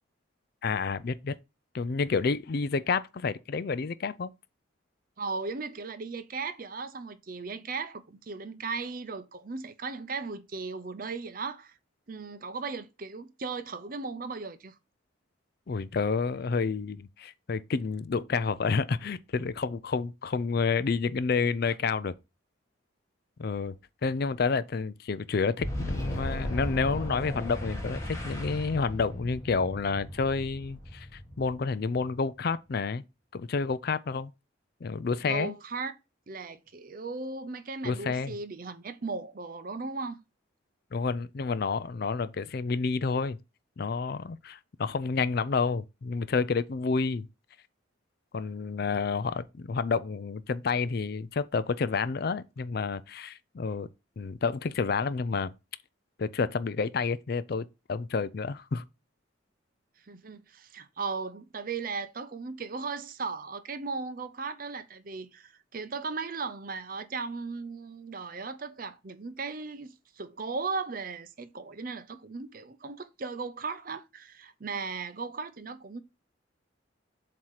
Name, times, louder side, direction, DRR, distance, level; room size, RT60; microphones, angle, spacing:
voice 1, 0.6-1.3 1.7-4.3 15.7-22.1 23.4-23.8 24.0-31.1 31.4-33.0 33.3-34.3 34.8-35.5 37.8-38.3 40.9-43.4 43.8-47.3 48.3-53.9 54.2-55.5 56.2-58.8, left 4 dB, 50° left, 0.4 m, -29 dB
voice 2, 5.2-11.8 12.1-14.8 35.2-35.9 36.3-40.2 60.0-76.0, right 4 dB, 45° right, 0.6 m, -37 dB
Boom, 25.6-32.2, left 1 dB, 15° left, 1.4 m, -36 dB
7.4 x 2.9 x 4.8 m
head